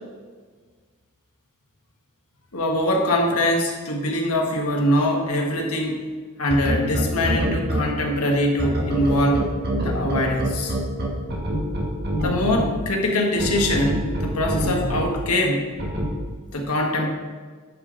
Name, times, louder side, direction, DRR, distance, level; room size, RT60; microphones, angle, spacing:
voice 1, 2.5-6.0 6.4-9.5 9.8-10.7 12.2-15.7 16.5-17.1, left 1 dB, 85° left, 1 dB, 1.5 m, -23 dB
sound 1, 6.5-7.8 8.6-12.6 13.4-15.0 15.8-16.0, right 1 dB, 50° right, 1.8 m, -24 dB
10.5 x 5.2 x 3.9 m, 1.5 s
head